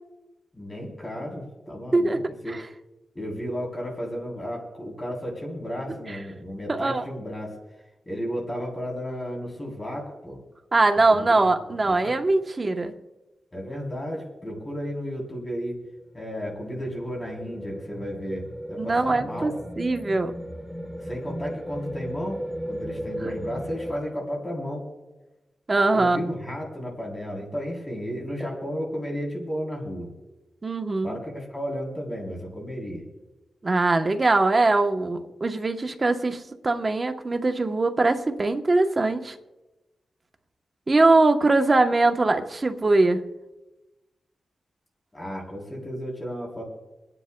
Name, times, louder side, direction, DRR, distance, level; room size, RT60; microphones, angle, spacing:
voice 1, 0.5-2.5 3.2-7.6 8.1-10.4 11.1-12.1 13.5-15.8 16.1-19.6 21.0-24.9 25.9-30.1 31.0-33.0 45.1-46.6, equal, 20° left, -1 dB, 3.4 m, -33 dB
voice 2, 6.7-7.0 10.7-12.9 18.8-19.5 19.8-20.3 25.7-26.2 30.6-31.2 33.6-39.4 40.9-43.2, right 2 dB, 35° right, 6 dB, 0.9 m, -22 dB
sound 1, 15.4-24.0, equal, ahead, 1.2 m, -36 dB
27.5 x 10.0 x 2.2 m, 1.1 s
cardioid pair, 80°, 0 cm